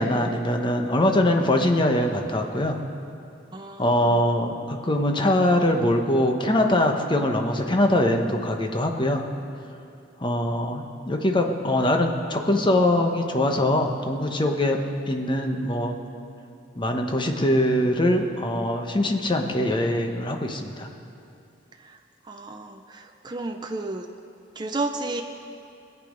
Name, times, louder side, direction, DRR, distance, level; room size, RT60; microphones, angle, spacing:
voice 1, 0.0-2.8 3.8-9.2 10.2-14.8 15.0-16.0 16.8-20.9, left 1 dB, 25° left, 3 dB, 1.0 m, -22 dB
voice 2, 3.5-3.8 22.3-24.1 24.6-25.2, right 2 dB, 25° right, 4 dB, 0.5 m, -31 dB
20.5 x 8.5 x 5.2 m, 2.6 s
head